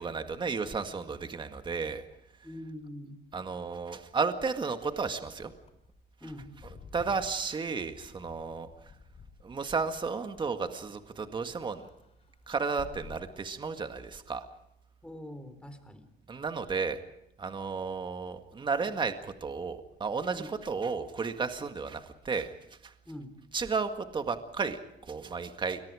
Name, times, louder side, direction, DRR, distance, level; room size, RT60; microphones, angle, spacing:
voice 1, 0.0-2.0 3.3-5.5 6.9-8.7 9.4-11.8 12.5-14.5 16.3-17.0 17.4-22.5 22.8-22.9 23.5-25.8, right 5 dB, 30° right, 7 dB, 1.9 m, -33 dB
voice 2, 2.4-3.2 6.2-6.5 15.0-16.0 20.3-20.5 23.1-23.4, left 1 dB, 5° left, 9 dB, 3.9 m, -44 dB
Wind / Car, 5.3-11.1 11.4-13.9, left 5 dB, 40° left, 3.4 m, -52 dB
29.5 x 23.0 x 5.0 m, 0.79 s
cardioid pair, 110°, 17 cm